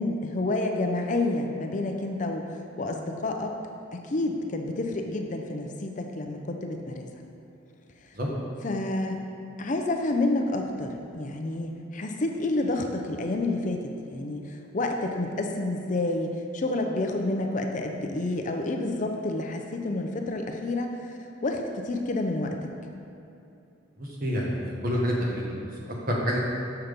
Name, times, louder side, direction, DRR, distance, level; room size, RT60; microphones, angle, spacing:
voice 1, 0.0-2.4 2.8-3.6 3.9-7.1 8.6-9.2 9.6-22.6, left 2 dB, 40° left, 3 dB, 0.5 m, -29 dB
voice 2, 24.0-26.4, equal, 45° right, -3 dB, 1.4 m, -28 dB
6.7 x 5.9 x 5.1 m, 2.8 s
head